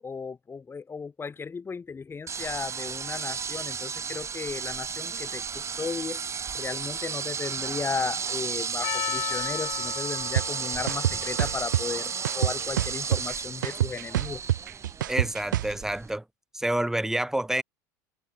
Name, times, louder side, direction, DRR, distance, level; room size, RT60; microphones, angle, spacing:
voice 1, 0.0-6.2 6.5-14.4, left 5 dB, 25° left, 7.5 m, -35 dB
sound 1, 2.3-16.2, right 6 dB, 30° right, 6.0 m, -33 dB
Percussion, 8.8-13.1, left 20 dB, 60° left, 3.2 m, -37 dB
sound 2, 10.4-10.5 10.9-11.8 12.2-13.3 13.6-15.7, right 13 dB, 85° right, 0.8 m, -25 dB
voice 2, 15.1-16.2 16.5-17.6, right 1 dB, 5° right, 1.0 m, -28 dB
hypercardioid pair, 85°, 10 cm